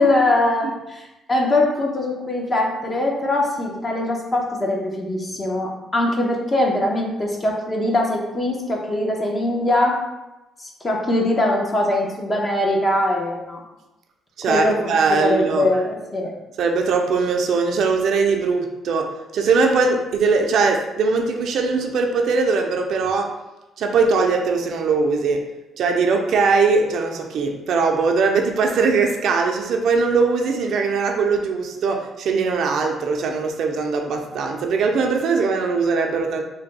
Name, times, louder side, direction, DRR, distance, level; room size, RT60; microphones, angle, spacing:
voice 1, 0.0-10.0 10.6-13.6 14.5-14.9 15.2-16.3, left 1 dB, 30° left, -1 dB, 0.8 m, -22 dB
voice 2, 14.4-15.7 16.6-23.3 23.8-25.4 25.8-36.4, right 4 dB, 70° right, 3 dB, 0.5 m, -20 dB
3.4 x 2.2 x 4.0 m, 0.99 s
cardioid pair, 90°, 0 cm